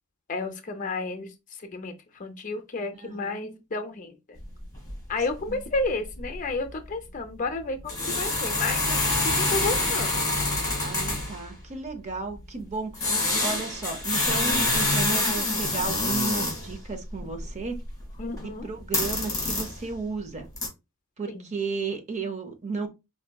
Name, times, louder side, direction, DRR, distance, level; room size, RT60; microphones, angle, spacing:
voice 1, 0.3-4.4 5.1-10.1 18.2-18.7 21.3-21.5, left 3 dB, 35° left, 0.5 m, -32 dB
voice 2, 3.0-3.6 5.5-5.6 10.8-17.8 18.6-20.5 21.2-22.9, right 4 dB, 30° right, 0.6 m, -34 dB
sound 1, 4.4-4.5 4.7-5.0 5.3-5.5 5.8-5.9 6.2-6.4 7.8-11.5 12.9-16.7 17.1-18.5 18.8-19.9 20.4-20.7, left 2 dB, 15° left, 1.6 m, -26 dB
4.8 x 2.6 x 2.2 m
head